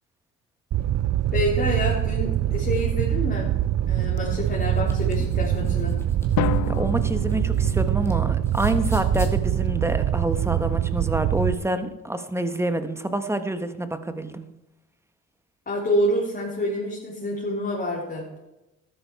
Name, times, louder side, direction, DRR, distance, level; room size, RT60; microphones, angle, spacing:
Fire, 0.7-11.5, right 12 dB, 60° right, 0.6 m, -24 dB
voice 1, 1.3-3.5 3.9-6.0 15.7-18.3, equal, 30° left, -5 dB, 3.6 m, -27 dB
sound 1, 4.7-8.1 8.4-9.3, left 1 dB, 10° left, 2.4 m, -34 dB
Drum, 6.4-8.4, left 13 dB, 70° left, 0.6 m, -31 dB
voice 2, 6.7-14.5, right 1 dB, 10° right, 9 dB, 1.3 m, -27 dB
13.0 x 11.5 x 4.7 m, 0.97 s
cardioid pair, 90°, 30 cm